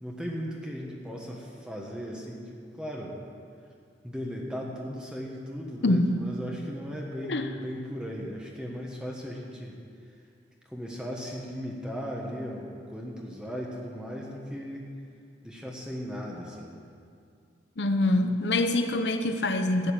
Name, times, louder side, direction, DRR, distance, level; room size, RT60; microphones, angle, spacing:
voice 1, 0.0-3.2 4.0-9.8 10.7-14.9 15.4-16.8, equal, 5° right, -2 dB, 1.3 m, -37 dB
voice 2, 17.8-19.9, left 2 dB, 80° left, 7 dB, 0.8 m, -25 dB
12.0 x 8.4 x 8.5 m, 2.3 s
head